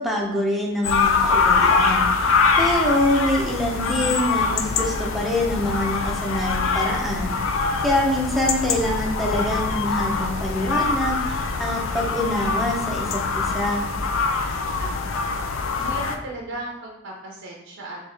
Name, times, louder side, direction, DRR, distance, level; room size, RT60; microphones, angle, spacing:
voice 1, 0.0-7.3 7.8-13.9, left 1 dB, ahead, -2 dB, 0.6 m, -25 dB
sound 1, 0.8-16.2, left 4 dB, 70° left, 0.4 m, -23 dB
voice 2, 14.8-15.2 15.7-18.0, right 2 dB, 65° right, -1 dB, 0.6 m, -36 dB
3.5 x 3.0 x 3.4 m, 0.88 s
head